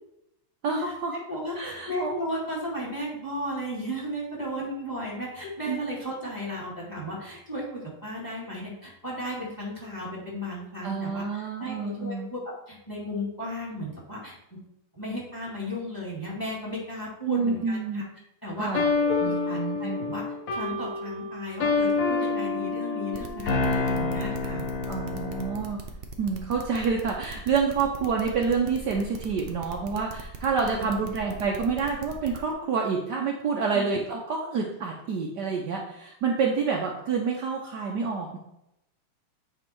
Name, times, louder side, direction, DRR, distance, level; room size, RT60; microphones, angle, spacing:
voice 1, 0.6-1.2 1.6-2.1 5.7-5.8 10.8-12.3 17.3-18.0 18.6-18.9 19.2-20.0 24.9-25.8 26.2-38.4, right 5 dB, 65° right, 0 dB, 1.3 m, -28 dB
voice 2, 1.3-11.2 11.6-12.4 12.7-14.4 14.9-18.0 18.4-18.8 19.2-20.2 20.5-24.7 30.6-30.8 33.7-33.8, equal, 10° left, -4 dB, 2.2 m, -35 dB
sound 1, 18.7-25.7, left 4 dB, 50° left, 1.2 m, -27 dB
sound 2, 23.1-32.5, right 5 dB, 80° right, 0.5 m, -40 dB
9.0 x 3.6 x 4.5 m, 0.82 s
omnidirectional pair, 2.2 m